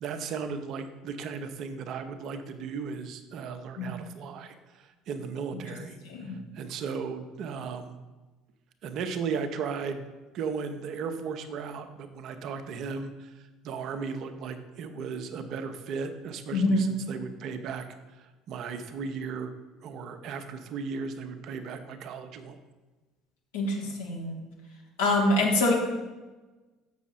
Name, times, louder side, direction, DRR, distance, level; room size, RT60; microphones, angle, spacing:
voice 1, 0.0-8.0 8.8-22.6, right 5 dB, 55° right, 8 dB, 0.7 m, -36 dB
voice 2, 16.5-16.9 23.5-24.4 25.0-25.7, left 1 dB, 75° left, -1 dB, 1.8 m, -25 dB
7.0 x 6.2 x 4.3 m, 1.2 s
figure-of-eight pair, 60°, 0 cm